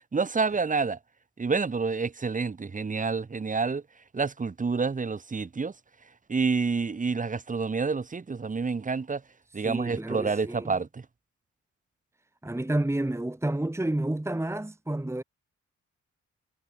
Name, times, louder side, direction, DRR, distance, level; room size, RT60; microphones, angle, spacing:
voice 1, 0.1-1.0 1.4-3.8 4.1-5.7 6.3-9.2 9.5-11.0, right 4 dB, 25° right, 1.3 m, -28 dB
voice 2, 9.6-10.8 12.4-15.2, right 1 dB, 10° right, 2.0 m, -30 dB
cardioid pair, 95°, 30 cm